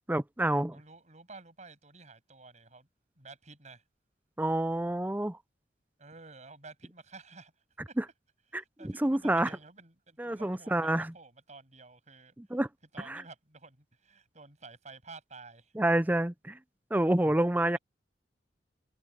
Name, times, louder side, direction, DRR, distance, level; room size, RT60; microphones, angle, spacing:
voice 1, 0.1-0.8 4.4-5.4 8.0-8.1 8.5-9.5 10.2-11.1 12.4-12.7 13.1-13.2 15.8-16.6 16.9-17.8, right 1 dB, 10° right, 0.5 m, -28 dB
voice 2, 0.7-2.9 3.2-3.8 6.0-7.5 7.9-8.0 8.5-12.3 12.9-15.7 17.7-17.8, right 3 dB, 40° right, 7.1 m, -51 dB
head